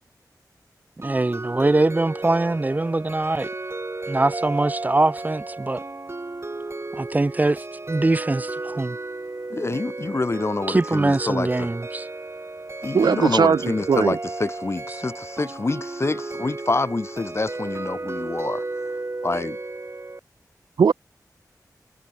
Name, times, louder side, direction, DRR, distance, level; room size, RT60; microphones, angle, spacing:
voice 1, 1.0-3.5 4.1-5.8 6.9-9.0 10.7-12.1, right 2 dB, 25° right, 0.4 m, -22 dB
sound 1, 1.0-20.2, right 2 dB, 40° right, 1.9 m, -33 dB
voice 2, 9.5-11.7 12.8-18.6 19.2-19.6, left 3 dB, 40° left, 0.7 m, -27 dB
voice 3, 12.9-14.2 20.8-20.9, right 6 dB, 85° right, 0.6 m, -19 dB
cardioid pair, 50°, 7 cm